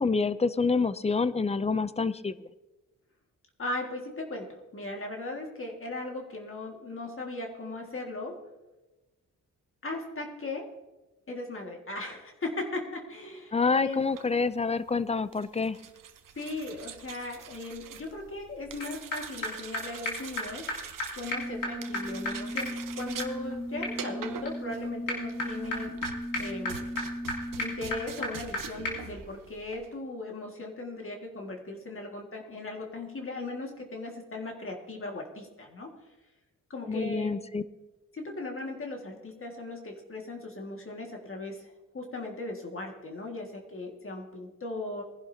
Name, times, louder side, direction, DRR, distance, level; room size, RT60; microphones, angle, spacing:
voice 1, 0.0-2.3 13.5-15.8 36.9-37.6, left 4 dB, 20° left, 15 dB, 0.4 m, -27 dB
voice 2, 3.6-8.4 9.8-10.7 11.3-14.0 16.4-20.7 21.1-26.9 27.6-35.9 36.7-37.4 38.1-45.0, left 2 dB, 40° left, 1 dB, 2.0 m, -38 dB
sound 1, 14.0-30.0, right 8 dB, 80° right, 1.0 m, -45 dB
sound 2, 18.8-18.9 19.1-19.2 19.4-19.5 19.7-19.8 20.1-20.2 20.4-20.5 20.7-20.8 21.0-21.1 21.3-28.6 28.9-29.0, left 1 dB, 75° left, 3.2 m, -34 dB
20.5 x 11.0 x 2.8 m, 1.1 s
cardioid pair, 100°, 32 cm